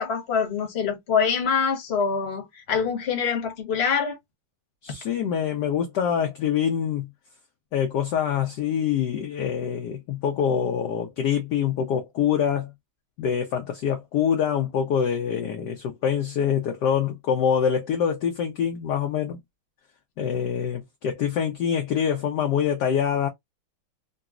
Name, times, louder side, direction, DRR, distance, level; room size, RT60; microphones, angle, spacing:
voice 1, 0.0-4.2, left 6 dB, 40° left, 1.0 m, -25 dB
voice 2, 4.8-7.1 7.7-12.7 13.2-19.4 20.2-23.3, left 8 dB, 75° left, 1.0 m, -25 dB
3.9 x 2.2 x 2.4 m
omnidirectional pair, 2.3 m